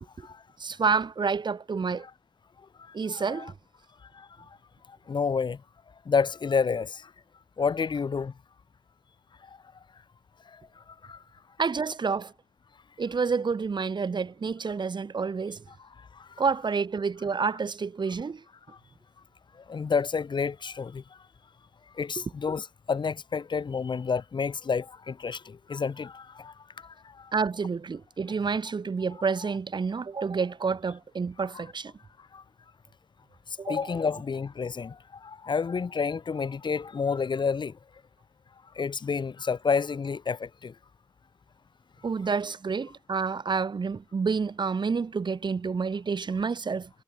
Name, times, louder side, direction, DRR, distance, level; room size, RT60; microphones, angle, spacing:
voice 1, 0.6-2.1 2.9-3.5 11.6-12.3 13.0-15.6 16.4-18.4 27.3-31.9 33.6-33.9 42.0-46.9, right 5 dB, 75° right, 2.0 m, -29 dB
voice 2, 3.1-3.5 4.2-4.3 5.1-5.6 6.1-7.1 7.6-8.3 11.1-11.2 19.7-21.0 22.0-26.5 26.8-27.3 30.2-30.3 32.3-32.4 33.7-35.0 35.2-37.7 38.8-40.7, left 5 dB, 85° left, 1.4 m, -29 dB
wide cardioid pair, 85°, 8 cm